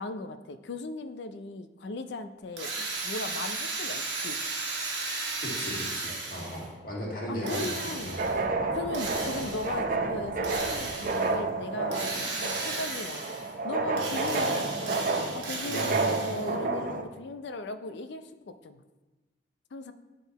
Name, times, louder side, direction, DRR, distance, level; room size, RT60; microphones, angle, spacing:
voice 1, 0.0-4.4 7.3-8.2 8.7-13.2 13.6-18.8 19.7-19.9, left 2 dB, 70° left, 10 dB, 0.4 m, -38 dB
Drill, 2.6-6.7 7.5-8.4 8.9-9.8 10.4-11.3 11.9-13.5 13.9-16.5, right 3 dB, 70° right, 1.3 m, -35 dB
voice 2, 5.4-8.2 15.6-16.3, left 1 dB, 50° left, -4 dB, 1.8 m, -36 dB
sound 1, 7.4-17.0, right 3 dB, 50° right, 0.6 m, -31 dB
sound 2, 8.0-11.6, right 1 dB, 35° left, 1.7 m, -49 dB
9.1 x 3.8 x 4.0 m, 1.2 s
head